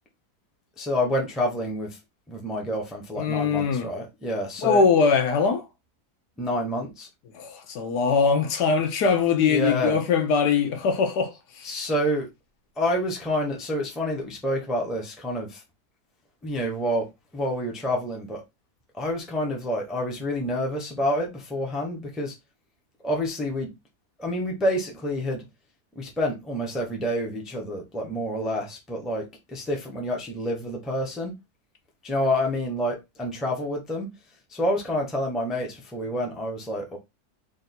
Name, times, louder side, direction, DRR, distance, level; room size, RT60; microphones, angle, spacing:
voice 1, 0.8-2.0 2.3-4.8 6.4-7.1 9.5-10.0 11.6-12.3 12.8-15.6 16.4-17.1 17.3-18.4 18.9-22.3 23.0-23.7 24.2-25.4 26.0-31.4 32.0-34.1 34.5-37.0, equal, ahead, 0.5 m, -28 dB
voice 2, 3.2-3.9 4.6-5.7 7.3-11.8, left 5 dB, 80° left, 1.4 m, -22 dB
3.5 x 2.6 x 4.1 m
omnidirectional pair, 1.7 m